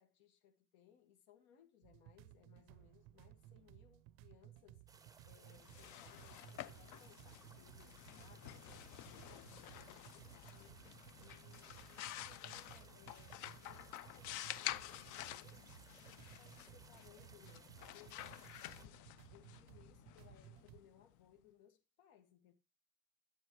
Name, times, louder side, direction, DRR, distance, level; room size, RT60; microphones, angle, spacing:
voice 1, 0.0-4.8 5.2-15.7 16.0-22.5, left 9 dB, 80° left, 1.9 m, -67 dB
sound 1, 1.8-20.8, right 14 dB, 85° right, 0.6 m, -60 dB
sound 2, 4.9-18.9, right 4 dB, 10° right, 0.5 m, -64 dB
sound 3, 5.5-21.2, left 14 dB, 50° left, 0.6 m, -50 dB
11.0 x 8.0 x 3.1 m
cardioid pair, 145°, 38 cm